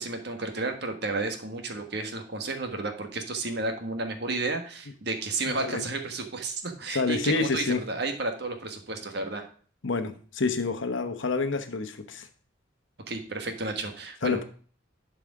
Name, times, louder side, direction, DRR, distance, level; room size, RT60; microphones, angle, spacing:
voice 1, 0.0-9.5 13.1-14.4, right 3 dB, 55° right, 5 dB, 1.4 m, -32 dB
voice 2, 5.5-5.8 6.9-7.8 9.8-12.3 14.2-14.4, left 3 dB, 75° left, 9 dB, 1.0 m, -28 dB
11.5 x 4.9 x 4.8 m, 0.43 s
head